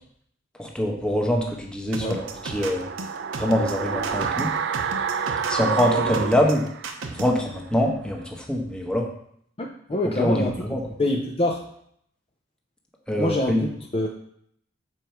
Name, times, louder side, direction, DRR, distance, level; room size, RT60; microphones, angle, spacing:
voice 1, 0.6-2.9 3.4-4.5 5.5-6.6 7.1-9.1 10.2-10.8 13.1-13.6, equal, 5° left, 0 dB, 1.0 m, -24 dB
sound 1, 1.9-7.4, right 3 dB, 85° right, 0.8 m, -35 dB
sound 2, 2.1-7.3 7.6-7.7, right 6 dB, 60° right, 0.5 m, -28 dB
voice 2, 9.6-10.5 11.0-11.6 13.2-14.1, left 1 dB, 30° left, 0 dB, 0.6 m, -25 dB
7.1 x 4.6 x 4.5 m, 0.68 s
head